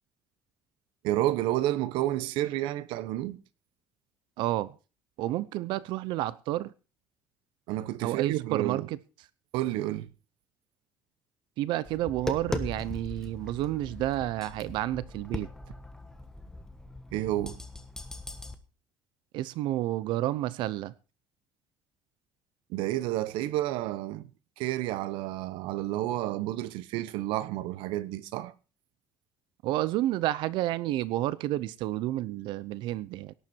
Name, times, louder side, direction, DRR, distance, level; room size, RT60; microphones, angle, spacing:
voice 1, 1.0-3.4 7.7-8.9 9.5-10.1 17.1-17.6 22.7-24.3 24.6-28.5, right 15 dB, 85° right, 1.0 m, -30 dB
voice 2, 4.4-4.8 5.2-6.7 8.0-9.0 11.6-15.5 19.3-20.9 29.6-33.3, right 15 dB, 70° right, 0.7 m, -30 dB
Tap, 11.9-18.5, left 2 dB, 5° left, 1.4 m, -39 dB
17.5 x 10.5 x 4.5 m
cardioid pair, 160°, 8 cm